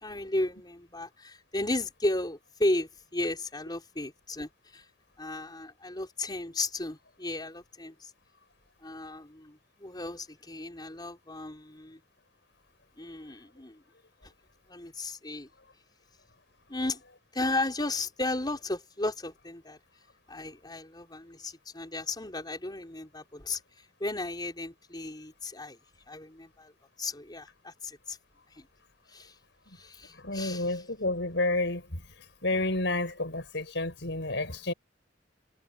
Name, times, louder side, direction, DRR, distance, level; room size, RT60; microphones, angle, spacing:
voice 1, 0.0-4.8 5.2-8.1 8.8-12.0 13.0-13.8 14.2-14.3 14.7-15.5 16.7-17.0 17.3-19.8 20.3-25.8 26.1-26.7 27.0-28.2 28.5-28.7 29.1-29.3 29.7-30.8, left 2 dB, 25° left, 4.5 m, -34 dB
voice 2, 30.2-32.0 32.4-34.7, left 2 dB, 70° left, 6.5 m, -30 dB
head